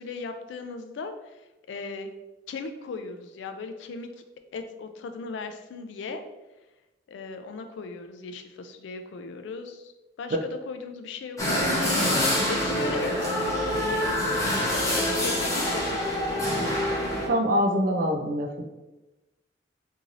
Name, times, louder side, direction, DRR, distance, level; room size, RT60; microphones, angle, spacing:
voice 1, 0.0-2.1 2.5-4.1 4.5-6.2 7.1-9.9 10.2-12.2 12.5-13.3 13.6-16.8, left 4 dB, 75° left, 7 dB, 0.3 m, -38 dB
sound 1, 11.4-17.3, left 1 dB, 20° left, 0.7 m, -26 dB
voice 2, 17.3-18.6, equal, 50° right, 3 dB, 0.4 m, -24 dB
3.0 x 2.7 x 2.5 m, 1.1 s
head